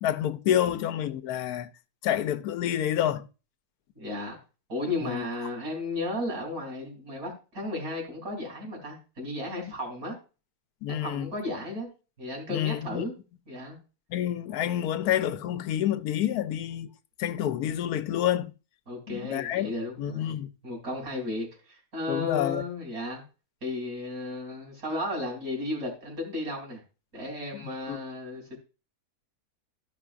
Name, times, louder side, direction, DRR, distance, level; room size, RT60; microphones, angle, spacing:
voice 1, 0.0-1.7 2.0-3.3 5.0-5.3 10.8-11.3 12.5-13.0 14.1-16.9 17.2-18.5 19.1-19.7 20.0-20.5 22.1-22.6 27.5-27.6 27.9-28.0, left 11 dB, 85° left, 1.1 m, -28 dB
voice 2, 4.0-4.4 4.7-10.2 10.9-11.9 12.2-13.1 13.5-13.8 18.9-23.2 23.6-26.8 27.1-28.6, left 2 dB, 70° right, 3.9 m, -34 dB
13.5 x 5.9 x 2.5 m
omnidirectional pair, 1.6 m